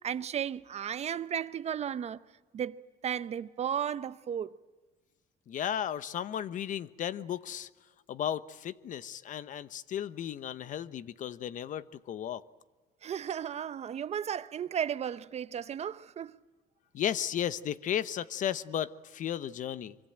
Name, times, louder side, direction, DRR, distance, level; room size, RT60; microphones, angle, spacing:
voice 1, 0.0-2.2 2.5-4.5 13.0-16.4, right 9 dB, 45° right, 0.8 m, -34 dB
voice 2, 5.5-7.7 8.1-12.4 16.9-20.0, left 10 dB, 55° left, 1.0 m, -34 dB
25.0 x 24.0 x 8.9 m
cardioid pair, 105°, 16 cm